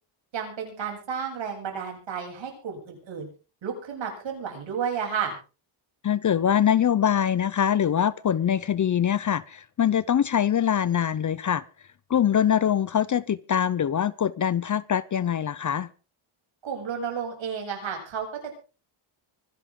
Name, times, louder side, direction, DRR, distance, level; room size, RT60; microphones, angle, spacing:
voice 1, 0.3-3.3 3.6-5.3 16.6-18.3, right 7 dB, 65° right, 7.7 m, -32 dB
voice 2, 6.0-11.6 12.1-15.9, left 9 dB, 40° left, 0.6 m, -23 dB
24.5 x 11.0 x 3.8 m
cardioid pair, 135°, 49 cm